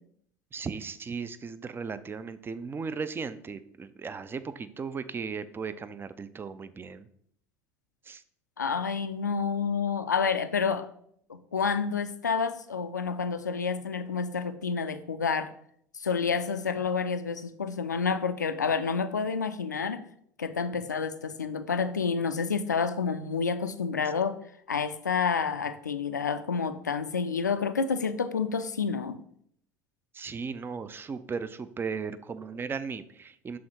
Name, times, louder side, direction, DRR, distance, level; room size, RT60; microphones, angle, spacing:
voice 1, 0.5-7.1 8.0-8.2 30.1-33.6, right 5 dB, 25° right, 13 dB, 0.5 m, -36 dB
voice 2, 8.6-10.8 11.3-15.5 15.9-20.0 20.4-24.4 24.7-29.2, left 5 dB, 90° left, 10 dB, 0.4 m, -29 dB
6.4 x 3.5 x 4.4 m, 0.67 s
figure-of-eight pair, 65°, 9 cm